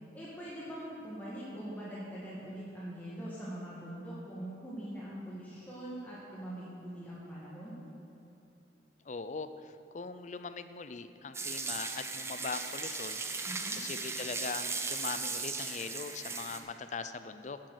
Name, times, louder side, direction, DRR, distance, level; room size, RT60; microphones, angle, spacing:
voice 1, 0.1-7.7 13.5-13.8, right 1 dB, 10° left, -8 dB, 1.8 m, -43 dB
voice 2, 9.1-13.2 13.8-17.6, left 4 dB, 40° left, 11 dB, 0.5 m, -41 dB
sound 1, 11.3-16.6, right 4 dB, 15° right, 0.6 m, -37 dB
11.0 x 8.3 x 6.5 m, 3.0 s
head